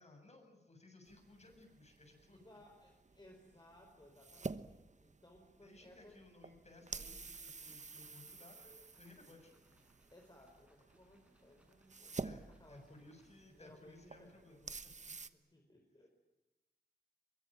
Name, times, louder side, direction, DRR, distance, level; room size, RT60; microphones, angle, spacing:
voice 1, 0.0-2.4 5.6-9.9 12.2-14.7 16.0-16.1, left 2 dB, 45° left, 4 dB, 7.5 m, -60 dB
sound 1, 1.1-15.3, right 4 dB, 45° right, 1.1 m, -50 dB
voice 2, 2.3-6.2 10.1-14.4 15.1-16.1, left 1 dB, 25° left, 2 dB, 4.7 m, -62 dB
sound 2, 6.9-13.7, right 1 dB, 10° right, 6.4 m, -75 dB
23.5 x 23.0 x 9.0 m, 1.1 s
wide cardioid pair, 95°, 16 cm